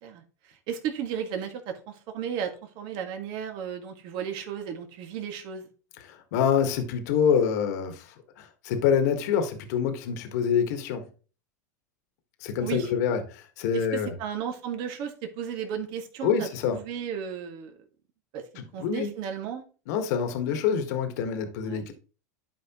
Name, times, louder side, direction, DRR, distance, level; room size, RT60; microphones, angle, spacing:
voice 1, 0.0-5.7 12.6-12.9 13.7-17.8 18.3-18.4 18.7-19.6 21.6-21.9, right 8 dB, 55° right, 1.9 m, -34 dB
voice 2, 6.0-8.1 8.4-11.1 12.4-14.1 16.2-16.8 18.6-19.1 19.9-21.9, left 7 dB, 70° left, 1.5 m, -26 dB
12.0 x 5.0 x 3.0 m
hypercardioid pair, 100°, 9 cm